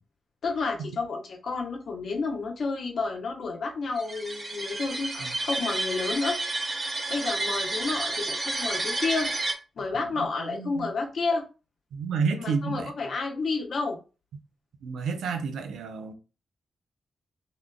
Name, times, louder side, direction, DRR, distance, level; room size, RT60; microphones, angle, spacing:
voice 1, 0.4-6.4 7.1-9.3 9.8-11.5 12.4-14.0, left 4 dB, 70° left, 0.8 m, -30 dB
sound 1, 4.0-9.5, right 2 dB, 40° right, 0.7 m, -30 dB
voice 2, 10.2-10.9 11.9-12.9 14.8-16.1, right 5 dB, 90° right, 0.4 m, -30 dB
3.6 x 2.4 x 2.2 m
supercardioid pair, 50°, 0 cm